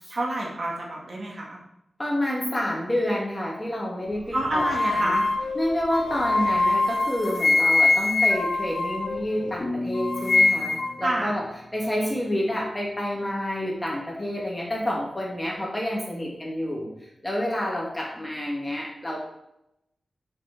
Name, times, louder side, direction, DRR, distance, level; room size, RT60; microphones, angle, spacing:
voice 1, 0.1-1.6 4.3-5.3 11.0-11.3, right 1 dB, 55° right, -1 dB, 2.3 m, -28 dB
voice 2, 2.0-5.1 5.5-11.4 11.7-16.9 17.2-19.2, left 1 dB, 15° left, -3 dB, 2.6 m, -28 dB
sound 1, 4.0-9.6, right 1 dB, 80° right, 2.3 m, -46 dB
sound 2, 4.3-9.6 9.9-11.0, left 3 dB, 75° left, 0.7 m, -23 dB
sound 3, 9.6-12.6, left 2 dB, 35° left, 0.9 m, -36 dB
7.7 x 6.3 x 5.3 m, 0.83 s
wide cardioid pair, 105°, 0 cm